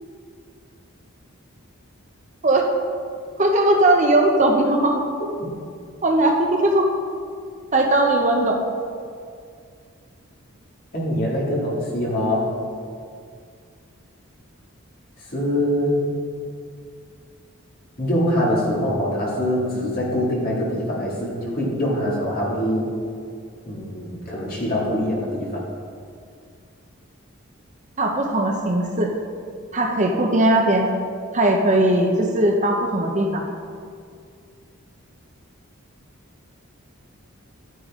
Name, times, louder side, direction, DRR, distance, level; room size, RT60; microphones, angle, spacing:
voice 1, 3.4-5.0 6.0-6.8 7.7-8.6 28.0-29.1 29.7-30.9 31.3-33.4, right 1 dB, 35° right, 2 dB, 0.8 m, -19 dB
voice 2, 10.9-12.5 15.3-16.0 18.0-22.9 23.6-25.6, equal, 45° left, -5 dB, 2.5 m, -23 dB
11.5 x 9.5 x 3.7 m, 2.3 s
head